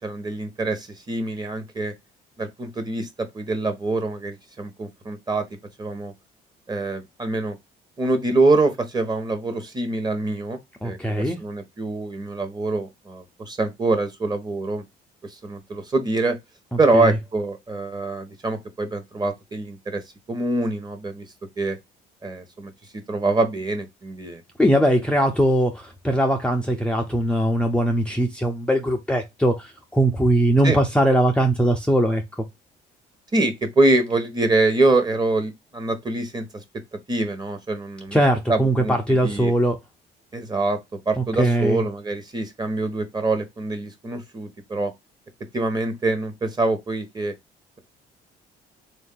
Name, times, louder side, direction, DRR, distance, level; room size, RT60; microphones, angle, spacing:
voice 1, 0.0-1.9 2.4-5.4 5.8-6.1 6.7-7.6 8.0-14.8 15.2-16.4 16.8-20.0 20.3-21.2 21.6-21.8 22.2-22.7 23.1-24.4 30.6-30.8 33.3-36.6 37.1-38.2 38.5-39.5 40.3-40.8 41.1-44.9 45.5-47.3, right 2 dB, 25° right, 1.2 m, -24 dB
voice 2, 10.8-11.4 16.7-17.1 24.6-32.4 38.1-39.8 41.2-41.8, right 1 dB, 5° left, 0.6 m, -21 dB
3.8 x 2.7 x 3.7 m
cardioid pair, 110°, 17 cm